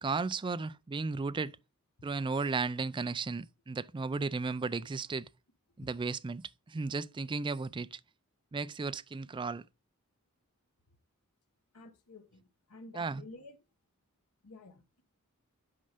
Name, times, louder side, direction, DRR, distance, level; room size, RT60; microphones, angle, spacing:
voice 1, 0.0-1.5 2.0-5.3 5.8-6.4 6.7-8.0 8.5-9.6 12.9-13.2, right 4 dB, 20° right, 0.4 m, -34 dB
voice 2, 11.7-12.4 12.7-13.6 14.4-15.0, left 2 dB, 90° left, 1.2 m, -51 dB
8.7 x 5.4 x 5.0 m
head